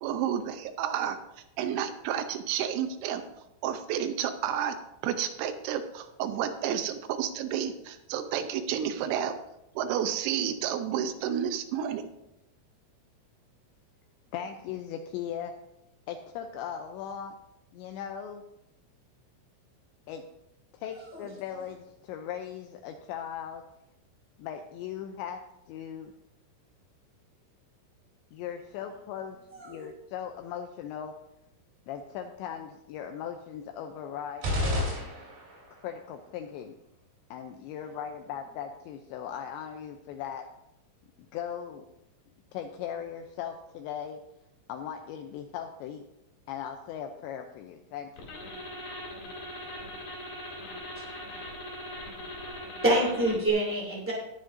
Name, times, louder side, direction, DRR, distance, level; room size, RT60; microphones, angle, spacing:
voice 1, 0.0-1.2 1.6-3.2 3.6-4.8 5.0-9.3 9.8-12.0, right 9 dB, 80° right, 7 dB, 2.7 m, -30 dB
voice 2, 14.3-15.6 16.1-17.4 17.7-18.4 20.1-20.3 20.7-23.6 24.4-26.1 28.3-29.4 29.6-31.2 31.9-34.9 35.7-36.8 37.3-40.5 41.3-41.9 42.5-44.2 44.7-46.0 46.5-48.3, left 8 dB, 85° left, 5 dB, 2.6 m, -38 dB
sound 1, 34.4-35.7, left 1 dB, 60° right, 6.6 m, -30 dB
sound 2, 48.2-53.5, left 1 dB, 50° left, 4.0 m, -40 dB
voice 3, 52.8-54.1, right 1 dB, 15° right, -4 dB, 0.5 m, -26 dB
19.5 x 7.6 x 2.6 m, 0.85 s
omnidirectional pair, 5.8 m